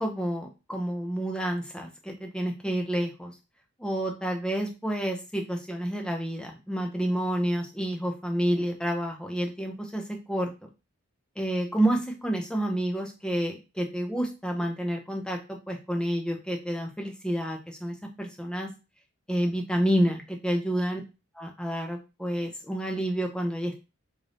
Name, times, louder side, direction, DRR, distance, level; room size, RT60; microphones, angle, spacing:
voice 1, 0.0-3.3 3.8-10.5 11.4-18.7 19.3-21.0 21.4-23.8, right 1 dB, 5° left, 2 dB, 0.5 m, -29 dB
3.8 x 2.6 x 3.3 m, 0.30 s
head